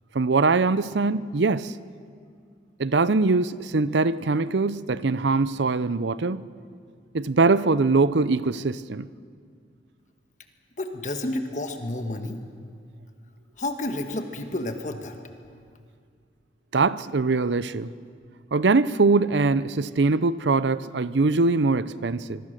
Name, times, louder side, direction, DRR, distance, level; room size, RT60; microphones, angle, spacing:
voice 1, 0.1-1.7 2.8-6.4 7.1-9.1 16.7-17.9 18.5-22.4, right 3 dB, 80° right, 16 dB, 0.7 m, -22 dB
voice 2, 10.8-12.4 13.6-15.1, left 1 dB, 45° left, 5 dB, 1.5 m, -30 dB
25.5 x 22.5 x 6.6 m, 2.1 s
head